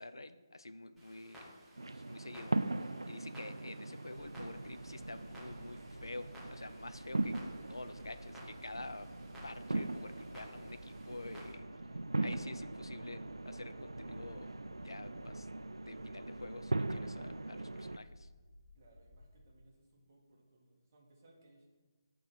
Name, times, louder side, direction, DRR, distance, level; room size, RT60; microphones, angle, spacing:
voice 1, 0.0-1.5 1.9-7.4 7.7-9.1 9.4-11.7 12.2-14.5 14.8-15.5 15.8-18.3, left 2 dB, 70° left, 11 dB, 0.5 m, -48 dB
Clock, 1.0-11.5, equal, 5° left, 1.6 m, -58 dB
sound 1, 1.8-18.0, right 2 dB, 70° right, 0.3 m, -40 dB
sound 2, 4.1-19.5, left 1 dB, 50° left, 1.8 m, -57 dB
voice 2, 18.7-21.7, right 1 dB, 30° right, -2 dB, 1.7 m, -65 dB
9.2 x 3.8 x 6.2 m, 1.3 s
figure-of-eight pair, 150°, 2 cm